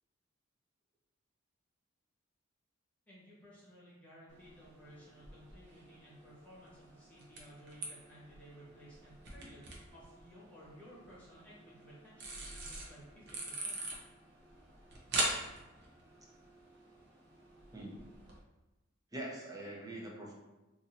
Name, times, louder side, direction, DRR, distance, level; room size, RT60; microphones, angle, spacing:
voice 1, 3.1-13.8, equal, 10° left, -8 dB, 1.1 m, -56 dB
sound 1, 4.3-18.4, right 2 dB, 55° right, 0.7 m, -44 dB
voice 2, 17.7-18.0 19.1-20.3, right 1 dB, 15° right, -3 dB, 0.6 m, -43 dB
2.7 x 2.6 x 4.1 m, 1.0 s
head